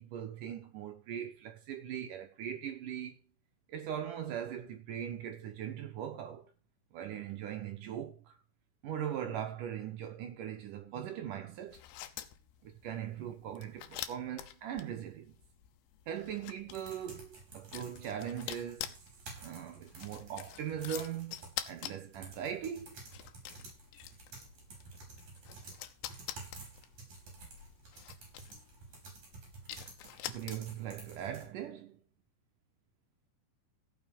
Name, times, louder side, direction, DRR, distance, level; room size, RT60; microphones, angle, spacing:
voice 1, 0.0-3.2 3.7-6.5 6.9-8.3 8.8-11.8 12.6-15.4 16.1-18.9 19.4-21.3 21.7-23.0 30.3-32.0, right 9 dB, 70° right, 2.0 m, -40 dB
sound 1, 11.7-30.9, left 13 dB, 80° left, 3.1 m, -47 dB
sound 2, 16.7-31.5, right 3 dB, 40° right, 6.7 m, -52 dB
16.0 x 6.1 x 5.3 m
omnidirectional pair, 5.3 m